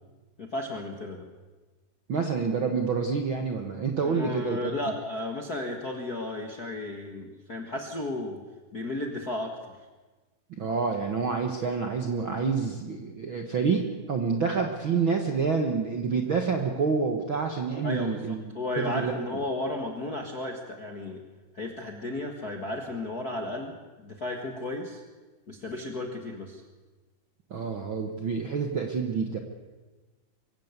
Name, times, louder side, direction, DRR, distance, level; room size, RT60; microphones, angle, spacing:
voice 1, 0.4-1.3 4.0-8.4 8.7-9.8 17.8-21.2 21.5-25.0 25.5-26.6, left 2 dB, 45° left, 3 dB, 1.3 m, -34 dB
voice 2, 2.1-4.7 10.6-18.5 18.8-19.1 27.5-29.4, right 5 dB, 55° right, 4 dB, 1.4 m, -28 dB
24.0 x 16.0 x 8.2 m, 1.2 s
omnidirectional pair, 4.3 m